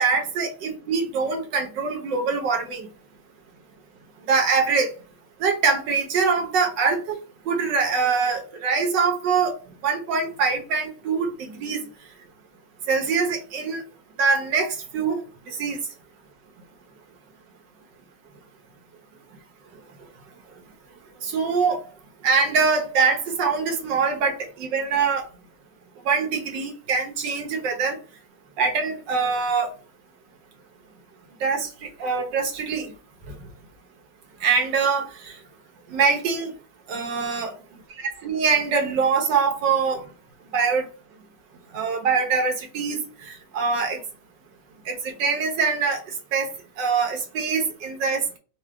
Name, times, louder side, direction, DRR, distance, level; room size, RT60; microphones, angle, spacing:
voice 1, 0.0-2.9 4.3-4.9 5.4-7.2 7.5-9.5 9.8-11.8 12.9-13.8 14.2-15.8 21.2-21.8 22.2-25.2 26.1-28.0 28.6-29.7 31.4-32.9 34.4-35.4 35.9-36.5 36.9-37.5 38.0-40.1 40.5-40.9 41.7-44.0 44.9-46.0 46.3-46.5 46.8-48.4, right 5 dB, 75° right, 1.7 m, -23 dB
4.8 x 2.4 x 3.4 m
omnidirectional pair, 2.0 m